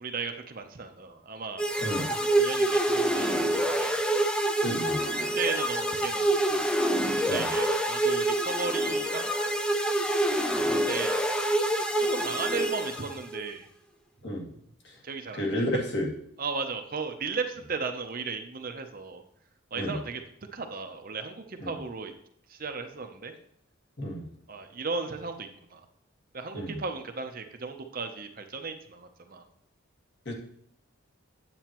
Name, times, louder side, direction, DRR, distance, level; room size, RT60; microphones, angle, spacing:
voice 1, 0.0-4.0 5.4-6.7 7.2-9.3 10.5-11.2 12.0-13.7 15.0-15.8 16.4-19.2 19.7-20.2 20.5-22.1 22.5-23.3 24.5-25.9 26.3-29.5, right 4 dB, 45° right, 6 dB, 0.6 m, -36 dB
sound 1, 1.6-13.4, right 1 dB, 5° left, 0.4 m, -26 dB
voice 2, 4.6-5.0 7.3-7.5 14.2-14.5 15.3-16.1 19.7-20.0 21.6-21.7 24.0-24.2 26.5-26.8 30.3-30.4, equal, 55° left, -1 dB, 1.8 m, -31 dB
9.2 x 7.7 x 3.0 m, 0.71 s
head